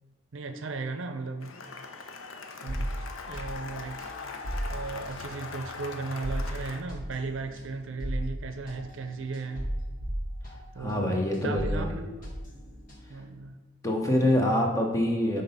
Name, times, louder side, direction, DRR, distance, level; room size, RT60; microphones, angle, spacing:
voice 1, 0.3-1.6 2.6-4.0 4.7-9.7 10.7-12.3 13.1-13.5, right 3 dB, 70° right, 7 dB, 0.6 m, -36 dB
Cheering / Applause, 1.4-6.8, left 4 dB, 85° left, 0.7 m, -41 dB
sound 1, 2.7-11.1 11.3-13.3, equal, 40° left, 1.6 m, -36 dB
voice 2, 10.8-11.9 13.8-15.4, left 1 dB, 15° left, 1 dB, 0.8 m, -25 dB
6.1 x 3.9 x 5.4 m, 1.3 s
head